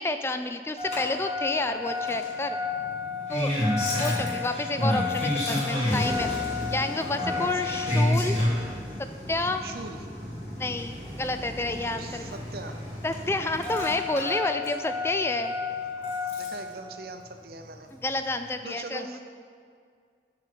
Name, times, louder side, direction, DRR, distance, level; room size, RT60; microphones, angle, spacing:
voice 1, 0.0-2.6 3.3-3.6 4.0-6.3 6.7-8.4 9.3-9.6 10.6-12.2 13.0-15.5 18.0-19.2, left 2 dB, 15° left, 8 dB, 0.3 m, -29 dB
Engine starting, 0.8-16.7 17.9-18.0, left 2 dB, 40° left, 2.1 m, -30 dB
voice 2, 9.6-10.1 12.0-12.8 15.7-15.9 16.2-17.9 18.6-19.2, right 3 dB, 55° right, 6 dB, 0.7 m, -41 dB
9.5 x 4.9 x 6.6 m, 2.1 s
head